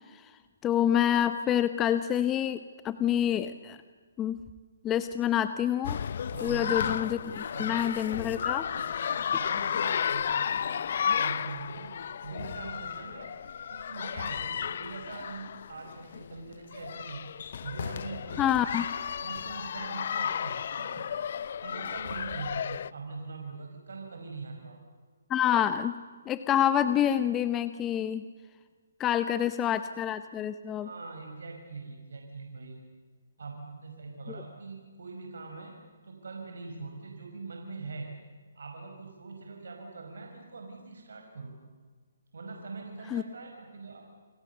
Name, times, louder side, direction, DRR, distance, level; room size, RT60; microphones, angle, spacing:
voice 1, 0.6-3.8 4.2-4.4 4.8-6.0 6.4-8.7 18.4-18.8 25.3-26.0 26.3-28.2 29.0-30.9 43.1-43.2, left 10 dB, 15° left, 11 dB, 0.9 m, -27 dB
sound 1, 5.8-22.9, left 8 dB, 55° left, 0.7 m, -33 dB
voice 2, 6.3-7.9 8.2-10.9 11.1-12.0 12.2-13.3 13.7-17.2 17.6-18.5 19.1-21.1 21.6-24.8 30.8-32.9 33.4-35.8 36.0-38.1 38.6-41.5 42.3-44.1, right 4 dB, 75° right, 2 dB, 5.2 m, -43 dB
30.0 x 24.5 x 6.9 m, 1.5 s
hypercardioid pair, 150°, 0 cm